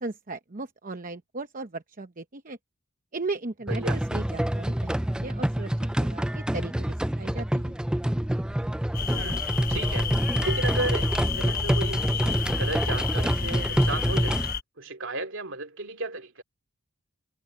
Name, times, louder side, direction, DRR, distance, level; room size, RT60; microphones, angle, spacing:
voice 1, 0.0-2.6 3.1-5.7 6.0-7.7, right 3 dB, 40° right, 0.9 m, -37 dB
sound 1, 3.7-14.5, right 1 dB, 5° right, 0.3 m, -27 dB
voice 2, 3.7-4.0 9.1-14.4 14.8-16.4, right 2 dB, 60° right, 2.8 m, -34 dB
sound 2, 8.9-14.6, left 5 dB, 40° left, 1.1 m, -31 dB
head